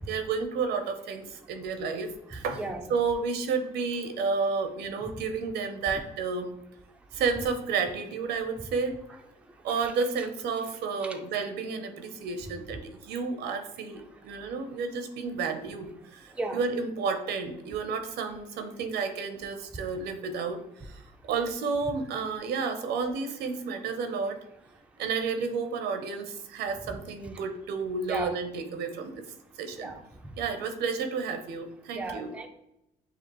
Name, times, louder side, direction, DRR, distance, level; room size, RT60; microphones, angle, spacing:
voice 1, 0.1-2.6 2.9-6.5 7.1-9.0 9.6-24.4 25.0-29.2 29.6-29.9 30.4-32.3, right 5 dB, 75° right, 7 dB, 0.7 m, -31 dB
voice 2, 2.5-2.9 9.7-9.9 11.0-11.2 16.4-16.6 26.9-27.0 28.1-28.3 29.8-30.0 31.9-32.5, right 2 dB, 5° right, 4 dB, 0.4 m, -35 dB
6.7 x 2.4 x 3.0 m, 0.84 s
cardioid pair, 110°, 17 cm